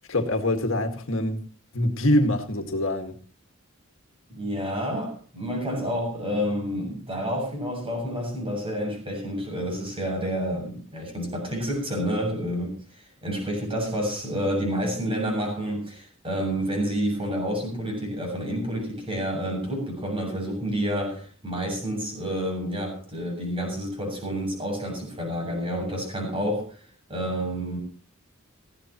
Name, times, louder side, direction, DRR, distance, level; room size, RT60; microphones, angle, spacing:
voice 1, 0.1-1.4 1.7-3.1, left 1 dB, 65° left, 6 dB, 1.9 m, -24 dB
voice 2, 4.3-27.8, equal, 25° right, 2 dB, 7.5 m, -29 dB
19.5 x 15.5 x 3.0 m, 0.40 s
head